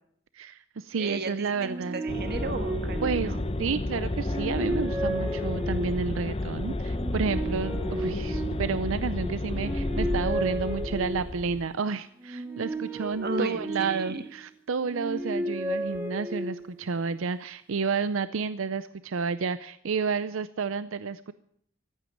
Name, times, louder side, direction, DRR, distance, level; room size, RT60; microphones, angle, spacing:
voice 1, 0.3-2.0 3.0-3.3 3.6-21.3, right 5 dB, 75° right, 14 dB, 0.5 m, -31 dB
voice 2, 1.0-3.4 13.2-14.2, right 2 dB, 50° right, 8 dB, 1.4 m, -35 dB
sound 1, 1.5-3.7 4.1-6.2 6.9-9.0 9.5-11.5 12.2-14.3 14.8-16.8, right 1 dB, 10° right, 2.3 m, -34 dB
sound 2, 2.1-11.7, left 2 dB, 30° left, 0.7 m, -31 dB
15.0 x 9.1 x 10.0 m, 0.70 s
head